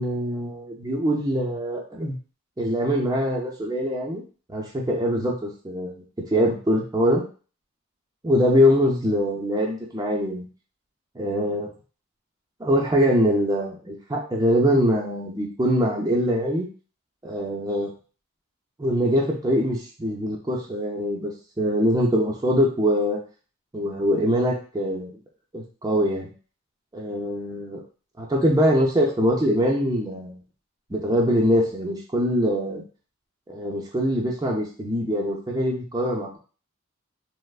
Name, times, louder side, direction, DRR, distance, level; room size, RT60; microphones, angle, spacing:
voice 1, 0.0-2.2 2.6-4.2 4.5-6.0 6.3-7.2 8.2-10.4 11.2-11.7 12.6-16.7 17.2-17.9 18.8-21.3 21.6-23.2 23.7-25.1 25.5-26.3 26.9-27.8 28.2-30.4 30.9-32.8 33.5-36.4, equal, 15° right, -2 dB, 0.4 m, -23 dB
3.2 x 2.0 x 2.3 m, 0.37 s
head